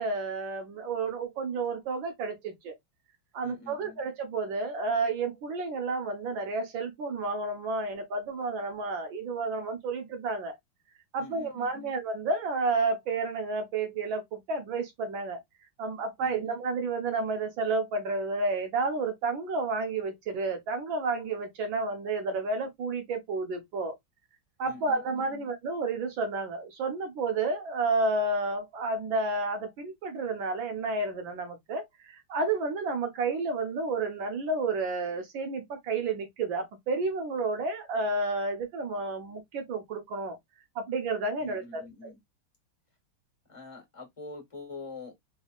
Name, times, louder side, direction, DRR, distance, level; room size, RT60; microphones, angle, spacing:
voice 1, 0.0-2.7 3.3-10.6 11.1-15.4 15.8-23.9 24.6-40.4 40.7-42.1, right 3 dB, 65° right, 1.7 m, -31 dB
voice 2, 3.4-4.0 11.2-11.9 16.2-16.5 24.6-25.5 41.4-42.2 43.5-45.1, left 3 dB, 15° left, 1.6 m, -46 dB
4.1 x 3.4 x 2.4 m
omnidirectional pair, 2.4 m